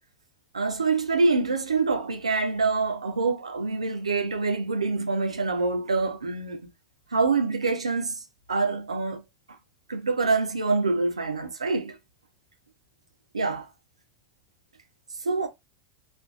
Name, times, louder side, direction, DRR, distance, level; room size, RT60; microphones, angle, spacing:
voice 1, 0.5-6.6 7.1-8.2 8.5-9.2 9.9-12.0 13.3-13.7 15.2-15.5, right 3 dB, 85° right, 0.4 m, -25 dB
2.5 x 2.1 x 2.3 m
figure-of-eight pair, 85°, 3 cm